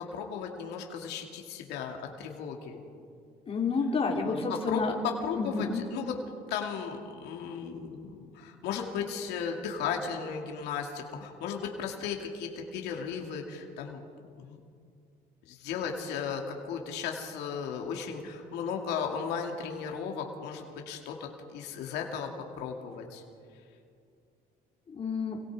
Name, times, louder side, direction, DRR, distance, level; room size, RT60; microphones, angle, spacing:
voice 1, 0.0-2.8 4.2-6.2 6.5-14.0 14.4-14.6 15.5-22.3 22.6-23.2, left 6 dB, 90° left, 2 dB, 2.5 m, -35 dB
voice 2, 3.5-4.9 5.4-5.8 24.9-25.4, left 4 dB, 35° left, 0 dB, 3.5 m, -30 dB
28.5 x 23.0 x 4.9 m, 2.3 s
cardioid pair, 110°, 17 cm